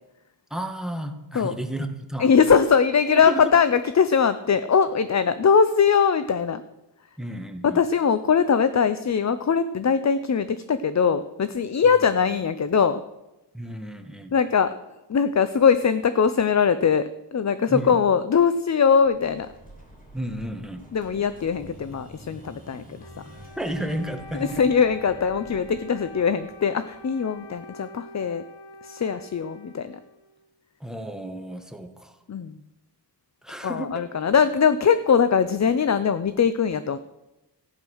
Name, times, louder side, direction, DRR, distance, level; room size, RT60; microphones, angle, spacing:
voice 1, 0.5-2.3 3.1-3.5 7.2-7.8 13.5-14.3 17.7-17.9 20.1-20.8 23.6-24.6 30.8-32.2 33.4-34.0, right 1 dB, ahead, 7 dB, 1.4 m, -32 dB
voice 2, 2.2-6.6 7.6-13.0 14.3-17.0 17.3-19.5 20.9-23.1 24.3-28.4 28.8-30.0 32.3-32.6 33.6-37.0, left 6 dB, 40° left, 12 dB, 0.6 m, -21 dB
Explosion, 19.0-27.7, equal, 20° left, 3.1 m, -48 dB
Wind instrument woodwind instrument, 23.0-30.5, left 2 dB, 70° left, 1.5 m, -45 dB
15.0 x 9.6 x 6.3 m, 0.98 s
wide cardioid pair, 110°, 42 cm